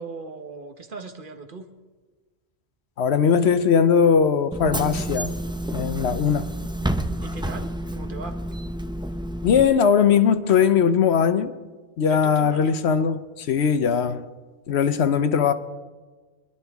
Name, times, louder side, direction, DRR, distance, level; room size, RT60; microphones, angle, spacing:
voice 1, 0.0-1.7 7.2-8.4 12.0-12.8, right 4 dB, 50° right, 1.2 m, -38 dB
voice 2, 3.0-5.3 5.7-6.5 9.4-11.5 12.0-14.3 14.7-15.5, left 7 dB, 75° left, 1.0 m, -20 dB
Bus / Engine, 4.5-9.6, right 1 dB, 5° right, 0.4 m, -29 dB
23.5 x 11.5 x 3.5 m
omnidirectional pair, 1.1 m